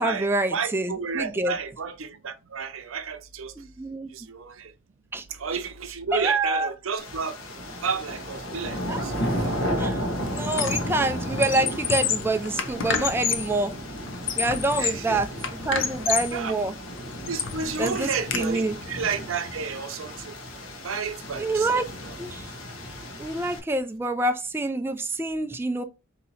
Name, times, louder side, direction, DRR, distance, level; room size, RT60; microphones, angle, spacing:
voice 1, 0.0-1.6 3.6-4.1 5.1-5.2 6.1-6.7 8.9-9.1 9.8-13.7 14.4-15.3 15.7-16.7 17.8-18.8 21.4-21.9 22.2-22.5 23.2-25.8, right 2 dB, 10° right, 0.3 m, -26 dB
voice 2, 0.5-3.5 4.1-4.7 5.3-7.4 7.8-9.6 14.8-15.2 16.3-16.6 17.3-20.3 20.8-22.1, right 5 dB, 80° right, 0.6 m, -31 dB
sound 1, 7.0-23.6, equal, 80° left, 1.0 m, -33 dB
Squeak, 9.2-9.4 9.8-11.0 11.3-13.6 14.0-15.1 15.4-16.4 16.9-18.4, left 7 dB, 65° left, 0.6 m, -29 dB
4.1 x 2.7 x 4.1 m
head